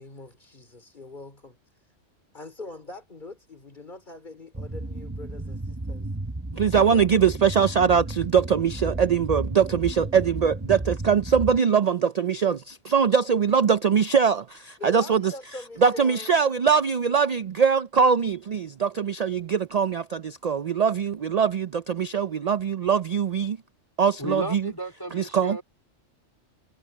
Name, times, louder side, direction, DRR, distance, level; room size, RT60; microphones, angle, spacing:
voice 1, 0.0-1.6 2.3-6.1 6.8-7.7 14.8-16.4, left 2 dB, 40° left, 3.6 m, -43 dB
sound 1, 4.5-11.6, right 2 dB, 15° right, 0.8 m, -33 dB
voice 2, 6.5-15.3 15.8-23.6 24.0-24.7 25.1-25.6, right 6 dB, 75° right, 0.3 m, -22 dB
voice 3, 24.2-25.6, equal, 15° left, 2.6 m, -33 dB
omnidirectional pair, 1.3 m